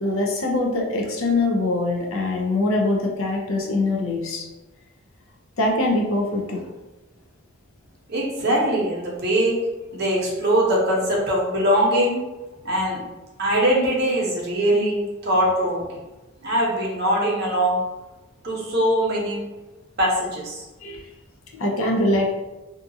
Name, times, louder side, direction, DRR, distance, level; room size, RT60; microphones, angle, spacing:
voice 1, 0.0-4.5 5.6-6.6 20.8-21.0 21.6-22.3, left 2 dB, 65° left, 0 dB, 0.6 m, -23 dB
voice 2, 8.1-9.6 9.9-12.2 12.6-13.0 13.4-15.8 16.4-17.8 18.4-19.4 20.0-20.6, right 1 dB, 45° right, -3 dB, 0.7 m, -22 dB
2.7 x 2.3 x 2.6 m, 1.1 s
head